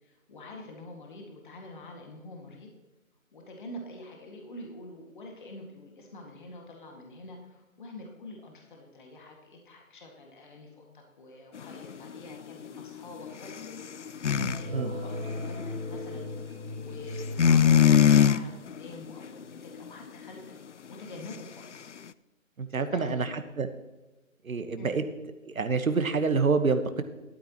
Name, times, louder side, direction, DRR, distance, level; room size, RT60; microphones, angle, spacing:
voice 1, 0.0-2.7 3.3-20.6 20.9-21.9 22.7-23.3 24.8-25.0, left 2 dB, 35° left, 1 dB, 2.0 m, -46 dB
sound 1, 11.6-14.6 15.0-16.3 17.2-18.4 18.7-19.3 19.6-19.9, left 8 dB, 60° left, 0.5 m, -22 dB
sound 2, 14.3-18.4, left 1 dB, 45° right, 2.6 m, -37 dB
voice 2, 22.6-23.3 23.6-23.7 24.4-25.0 25.4-27.0, right 4 dB, 80° right, 9 dB, 1.3 m, -27 dB
13.0 x 12.5 x 3.0 m, 1.1 s
figure-of-eight pair, 165°, 41 cm